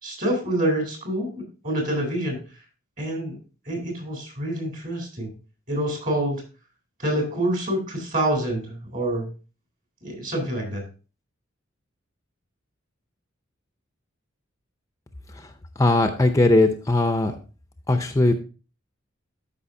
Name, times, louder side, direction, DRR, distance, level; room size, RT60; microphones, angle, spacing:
voice 1, 0.0-2.4 3.0-3.4 3.7-5.3 5.7-6.4 7.0-9.3 10.0-10.8, right 1 dB, 40° right, 2 dB, 3.6 m, -27 dB
voice 2, 15.8-17.4 17.9-18.3, left 2 dB, 15° left, 6 dB, 0.6 m, -19 dB
12.5 x 5.5 x 2.7 m, 0.35 s
head